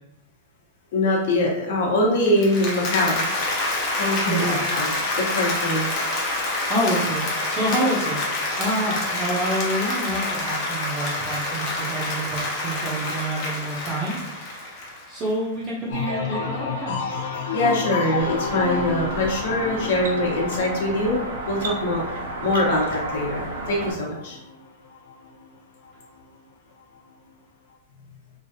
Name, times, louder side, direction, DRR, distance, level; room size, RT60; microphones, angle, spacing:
voice 1, 0.9-3.3 3.9-4.9 5.4-5.9 17.3-21.2 21.5-22.0 22.4-24.4, left 1 dB, 60° left, -1 dB, 1.0 m, -23 dB
Applause, 2.3-15.3, left 2 dB, 35° left, 0.7 m, -27 dB
voice 2, 4.2-4.7 6.7-8.2 8.6-17.0, right 1 dB, 25° right, -6 dB, 0.6 m, -28 dB
sound 1, 15.9-25.5 25.8-26.4, left 4 dB, 80° left, 0.6 m, -31 dB
sound 2, 18.2-23.9, right 2 dB, 85° right, 0.7 m, -32 dB
3.0 x 2.6 x 2.7 m, 0.88 s
supercardioid pair, 165°, 0 cm